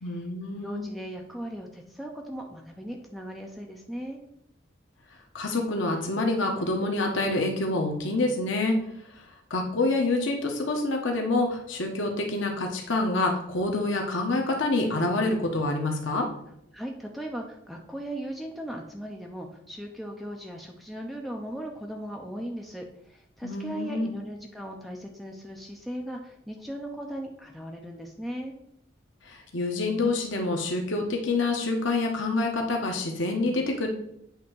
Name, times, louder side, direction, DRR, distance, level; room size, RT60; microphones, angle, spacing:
voice 1, 0.0-0.8 5.3-8.8 9.1-16.3 23.4-24.1 29.2-33.9, left 2 dB, 75° left, 2 dB, 1.1 m, -27 dB
voice 2, 0.6-4.2 16.7-28.5, right 1 dB, ahead, 1 dB, 0.6 m, -38 dB
8.5 x 3.5 x 6.3 m, 0.77 s
head